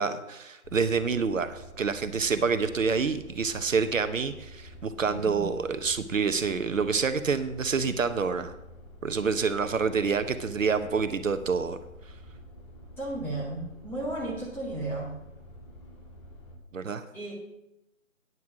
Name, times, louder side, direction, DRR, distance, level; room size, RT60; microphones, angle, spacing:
voice 1, 0.0-8.5 9.0-11.8 16.7-17.0, right 5 dB, 70° right, 10 dB, 0.9 m, -27 dB
sound 1, 0.6-16.6, left 1 dB, 20° left, 1.3 m, -48 dB
voice 2, 5.0-5.5 13.0-15.1 17.1-17.3, right 2 dB, 5° left, -6 dB, 1.6 m, -34 dB
9.3 x 7.9 x 6.1 m, 0.90 s
figure-of-eight pair, 155°, 41 cm